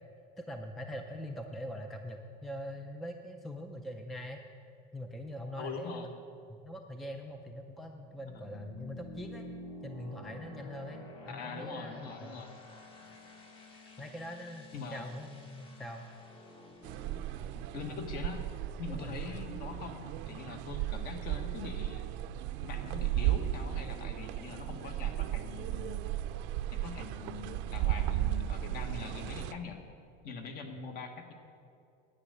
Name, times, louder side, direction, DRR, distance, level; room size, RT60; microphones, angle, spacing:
voice 1, 0.4-4.4 4.9-6.1 6.5-9.5 9.8-12.4 13.7-16.1 18.9-19.4, equal, ahead, 4 dB, 0.3 m, -43 dB
voice 2, 5.6-6.1 8.3-8.5 11.3-12.6 14.7-15.1 17.7-18.4 18.8-22.1 22.6-26.1 26.7-29.8 30.2-31.3, left 5 dB, 45° left, 6 dB, 1.2 m, -43 dB
sound 1, 7.9-19.7, left 1 dB, 25° left, 1.0 m, -51 dB
sound 2, 16.8-29.5, right 13 dB, 60° right, 0.5 m, -35 dB
9.9 x 9.1 x 6.5 m, 2.5 s
cardioid pair, 180°, 21 cm